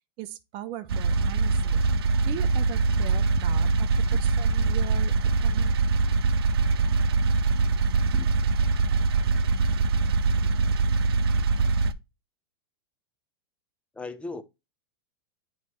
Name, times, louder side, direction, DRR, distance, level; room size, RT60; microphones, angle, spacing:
voice 1, 0.2-1.8 2.3-5.2 5.4-5.8, right 13 dB, 45° right, 0.7 m, -39 dB
sound 1, 0.9-11.9, right 4 dB, 85° right, 0.6 m, -23 dB
voice 2, 14.0-14.4, left 3 dB, 10° left, 0.7 m, -37 dB
8.2 x 3.2 x 4.3 m
hypercardioid pair, 125°, 12 cm